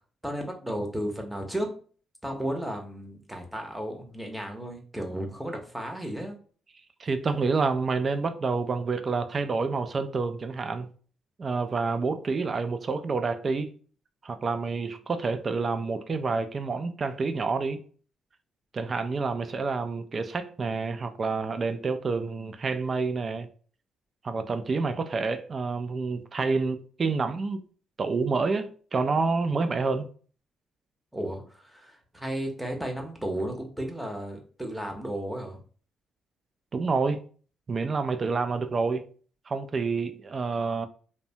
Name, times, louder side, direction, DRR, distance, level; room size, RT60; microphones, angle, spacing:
voice 1, 0.2-1.7 2.2-6.4 31.1-35.6, right 1 dB, 5° right, 0.7 m, -34 dB
voice 2, 7.0-10.9 11.4-13.7 14.2-17.8 18.7-23.5 24.2-27.6 28.0-30.1 36.7-37.2 37.7-39.1 39.5-40.9, right 4 dB, 40° right, 0.3 m, -28 dB
2.6 x 2.1 x 2.7 m
cardioid pair, 90°, 0 cm